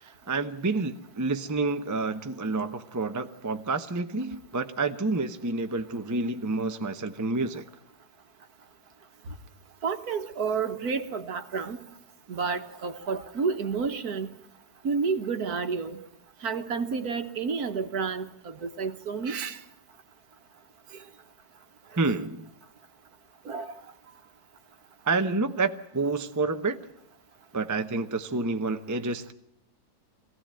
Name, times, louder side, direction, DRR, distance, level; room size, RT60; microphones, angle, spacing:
voice 1, 0.0-7.6 22.0-22.5 25.0-26.8 27.5-29.3, right 3 dB, 20° right, 0.5 m, -29 dB
voice 2, 9.8-11.8 12.3-14.3 14.8-16.0 16.4-19.6 22.0-22.2 23.4-23.7, right 5 dB, 60° right, 1.7 m, -30 dB
23.0 x 16.0 x 9.0 m
omnidirectional pair, 1.9 m